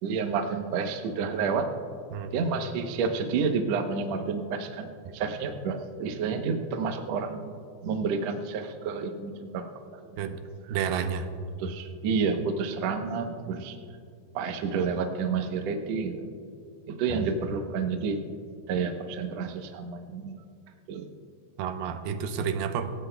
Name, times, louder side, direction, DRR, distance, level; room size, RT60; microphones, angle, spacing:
voice 1, 0.0-1.7 2.3-7.6 7.8-10.2 11.6-13.8 14.3-16.3 16.9-18.2 18.7-20.4 20.9-21.1, right 5 dB, 70° right, 5 dB, 1.6 m, -30 dB
voice 2, 10.7-11.3 17.1-17.2 21.6-22.9, right 7 dB, 85° right, 7 dB, 2.6 m, -30 dB
26.0 x 16.0 x 2.3 m, 2.4 s
omnidirectional pair, 4.3 m